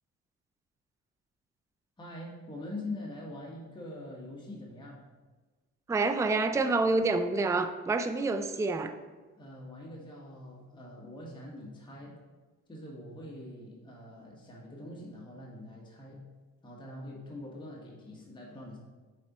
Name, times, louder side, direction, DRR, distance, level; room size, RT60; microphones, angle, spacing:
voice 1, 2.0-5.0 9.4-12.2 12.7-16.2 16.6-18.8, left 1 dB, 15° left, -4 dB, 1.5 m, -44 dB
voice 2, 5.9-9.0, right 3 dB, 10° right, 8 dB, 0.3 m, -27 dB
6.6 x 4.2 x 4.2 m, 1.3 s
cardioid pair, 90°, 30 cm